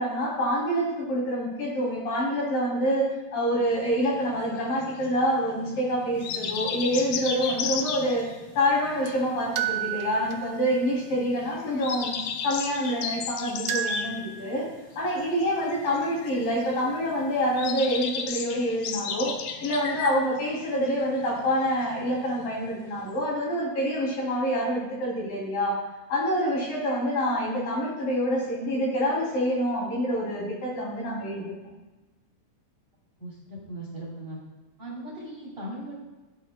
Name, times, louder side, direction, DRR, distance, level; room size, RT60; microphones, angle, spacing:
voice 1, 0.0-8.2 8.6-12.2 12.4-14.7 15.0-19.3 19.6-25.8 26.1-31.6, equal, 60° left, -5 dB, 4.4 m, -26 dB
sound 1, 3.7-23.2, left 6 dB, 75° left, 2.3 m, -35 dB
sound 2, 7.8-7.9 9.1-9.2 9.6-11.0 13.0-13.1 13.7-14.6, right 9 dB, 75° right, 2.1 m, -32 dB
voice 2, 33.2-34.4 34.8-35.9, right 1 dB, 30° right, -6 dB, 3.0 m, -38 dB
17.0 x 9.1 x 2.2 m, 1.1 s
omnidirectional pair, 4.5 m